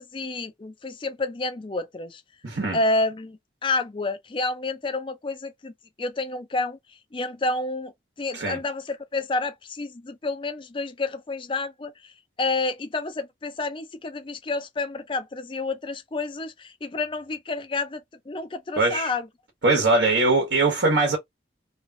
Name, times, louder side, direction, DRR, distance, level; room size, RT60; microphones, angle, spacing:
voice 1, 0.0-2.2 2.7-5.7 6.0-6.8 7.1-7.9 8.2-12.1 12.4-19.3, left 3 dB, 25° left, 0.4 m, -29 dB
voice 2, 2.4-2.8 8.3-8.6 18.8-19.1 19.6-21.2, right 3 dB, 70° right, 1.2 m, -21 dB
3.1 x 2.3 x 2.7 m
head